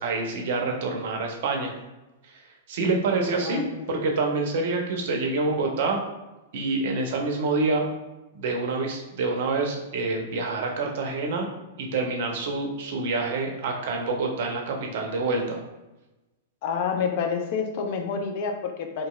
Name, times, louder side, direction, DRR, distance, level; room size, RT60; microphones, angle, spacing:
voice 1, 0.0-1.7 2.3-2.4 2.7-6.0 6.5-7.9 8.3-15.6, right 3 dB, 55° right, 2 dB, 0.5 m, -27 dB
voice 2, 3.4-3.9 16.6-19.1, left 6 dB, 50° left, 4 dB, 0.4 m, -28 dB
2.8 x 2.6 x 2.2 m, 1.0 s
figure-of-eight pair, 100°, 0 cm